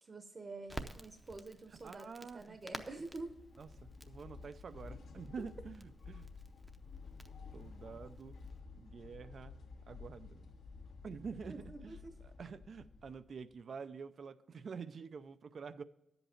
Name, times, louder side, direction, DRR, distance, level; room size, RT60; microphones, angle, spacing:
voice 1, 0.0-2.1 2.3-3.4 11.5-12.1, right 3 dB, 35° right, 0.9 m, -47 dB
Crackle, 0.7-8.6, right 1 dB, 10° right, 0.7 m, -52 dB
voice 2, 1.8-2.6 3.6-6.3 7.5-8.3 8.7-9.5 9.9-10.5 11.0-12.0 12.4-15.8, right 5 dB, 50° right, 0.5 m, -47 dB
sound 1, 2.5-13.6, left 4 dB, 90° left, 1.7 m, -53 dB
11.0 x 7.9 x 4.4 m
wide cardioid pair, 160°, 0 cm